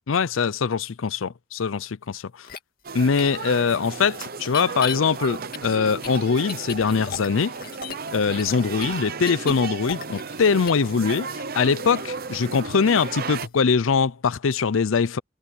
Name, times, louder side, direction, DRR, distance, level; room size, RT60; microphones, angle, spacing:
voice 1, 0.1-2.5 2.9-7.5 8.1-15.2, left 5 dB, 85° left, 0.6 m, -22 dB
sound 1, 2.4-2.6 3.2-3.3 4.4-5.0 5.5-8.1 8.4-10.4 10.7-10.9, left 7 dB, 50° left, 2.0 m, -34 dB
sound 2, 2.8-13.5, right 5 dB, 50° right, 0.8 m, -34 dB
head